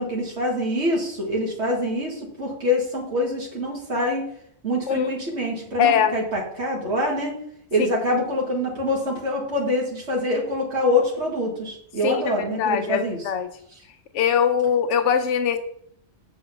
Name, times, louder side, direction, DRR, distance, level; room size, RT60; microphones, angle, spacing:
voice 1, 0.0-4.3 4.6-7.4 7.7-13.2, left 1 dB, 70° right, -3 dB, 2.2 m, -25 dB
voice 2, 5.8-6.1 7.8-7.9 12.0-13.5 14.1-15.6, left 8 dB, 90° left, 9 dB, 1.0 m, -22 dB
7.9 x 4.6 x 5.9 m, 0.67 s
omnidirectional pair, 1.2 m